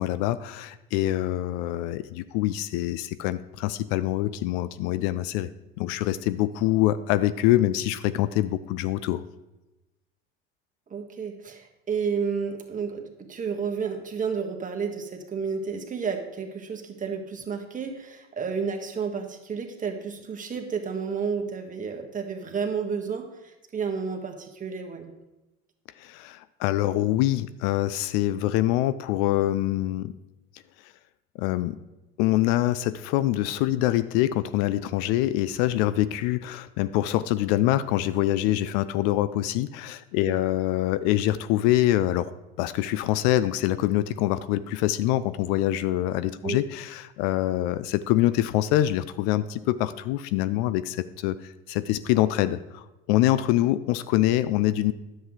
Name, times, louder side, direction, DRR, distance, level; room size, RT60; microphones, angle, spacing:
voice 1, 0.0-5.5 5.8-9.2 26.0-30.1 31.4-31.8 32.2-42.3 42.6-54.9, left 14 dB, 60° left, 15 dB, 0.5 m, -25 dB
voice 2, 10.9-25.1 40.3-40.4 46.4-46.6, right 6 dB, 25° right, 3 dB, 1.5 m, -31 dB
10.0 x 7.7 x 3.7 m, 1.0 s
hypercardioid pair, 80°, 31 cm